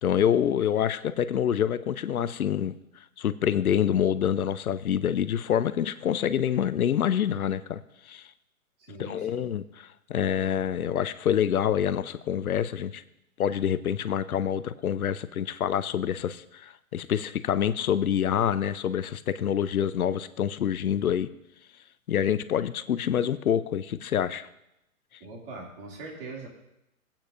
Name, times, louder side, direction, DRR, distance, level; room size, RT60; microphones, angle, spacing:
voice 1, 0.0-2.8 3.2-7.8 8.1-8.2 9.0-13.0 13.4-21.3 22.1-24.5, left 9 dB, 80° left, 14 dB, 0.7 m, -26 dB
voice 2, 8.8-9.5 25.2-26.5, right 3 dB, 40° right, -1 dB, 2.7 m, -41 dB
19.0 x 8.7 x 2.6 m, 0.85 s
hypercardioid pair, 135°, 43 cm